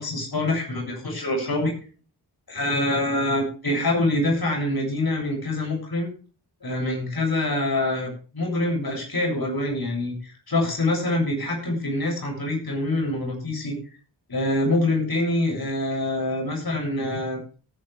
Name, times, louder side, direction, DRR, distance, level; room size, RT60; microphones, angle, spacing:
voice 1, 0.0-1.7 2.5-6.1 6.6-13.8 14.3-17.4, left 1 dB, 55° left, 1 dB, 7.5 m, -25 dB
18.0 x 10.5 x 3.5 m, 0.38 s
cardioid pair, 55°, 44 cm